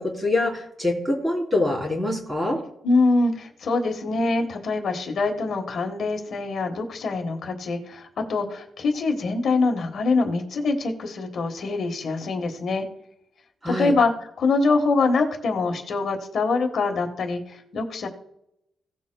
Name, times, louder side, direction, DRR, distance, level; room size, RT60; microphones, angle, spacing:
voice 1, 0.0-2.6 13.6-13.9, left 2 dB, 15° right, -1 dB, 3.4 m, -24 dB
voice 2, 2.8-12.8 13.7-14.1 14.4-18.1, left 3 dB, 55° left, 3 dB, 1.4 m, -24 dB
17.0 x 7.1 x 2.3 m, 0.79 s
wide cardioid pair, 165°, 0 cm